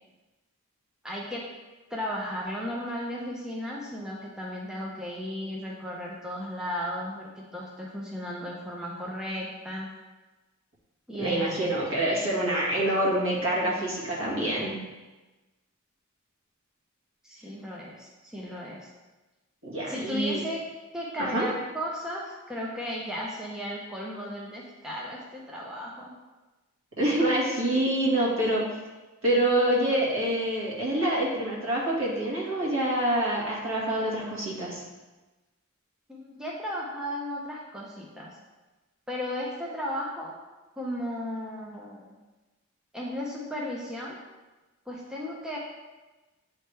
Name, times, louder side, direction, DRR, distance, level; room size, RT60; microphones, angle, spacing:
voice 1, 1.0-1.5 1.9-9.9 11.1-11.6 13.6-13.8 14.2-14.7 17.2-18.9 19.9-20.7 20.9-26.1 36.1-38.4 39.1-40.4 40.8-42.2 42.9-44.2 44.9-45.6, equal, 5° right, -4 dB, 0.6 m, -35 dB
voice 2, 11.2-14.8 19.6-20.4 21.2-21.5 27.0-28.6 29.2-34.8, right 1 dB, 65° right, -5 dB, 1.7 m, -26 dB
8.8 x 3.3 x 3.3 m, 1.2 s
head